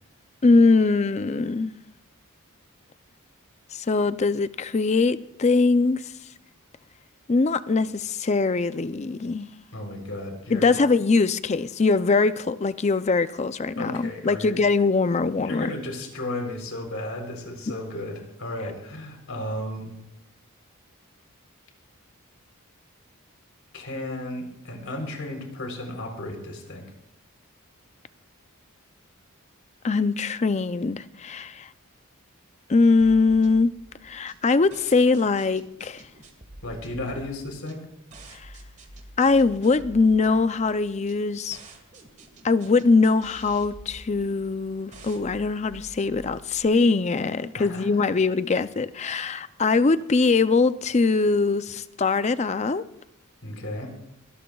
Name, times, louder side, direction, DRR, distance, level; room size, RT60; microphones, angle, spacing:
voice 1, 0.4-1.7 3.7-6.1 7.3-9.5 10.5-15.7 29.8-31.7 32.7-33.7 34.0-36.0 38.3-38.5 39.2-41.6 42.4-52.9, left 3 dB, 30° left, 0.4 m, -22 dB
voice 2, 9.7-10.8 13.8-14.6 15.4-19.9 23.7-26.9 36.6-37.8 47.6-47.9 53.4-53.9, left 1 dB, 70° left, 3.6 m, -34 dB
sound 1, 33.0-46.6, right 1 dB, 35° right, 1.6 m, -48 dB
22.0 x 17.5 x 2.4 m
head